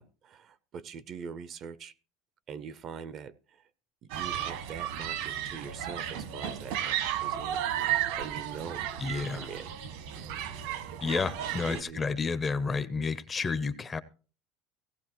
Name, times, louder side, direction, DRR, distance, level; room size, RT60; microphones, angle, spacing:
voice 1, 0.0-1.9 2.5-3.3 4.0-9.7 10.1-10.3 11.7-12.0, right 6 dB, 30° right, 0.6 m, -43 dB
Human group actions, 4.1-11.8, right 10 dB, 70° right, 1.8 m, -34 dB
voice 2, 9.0-9.5 11.0-14.0, left 4 dB, 15° left, 0.6 m, -31 dB
17.0 x 16.0 x 3.0 m
cardioid pair, 170°, 0 cm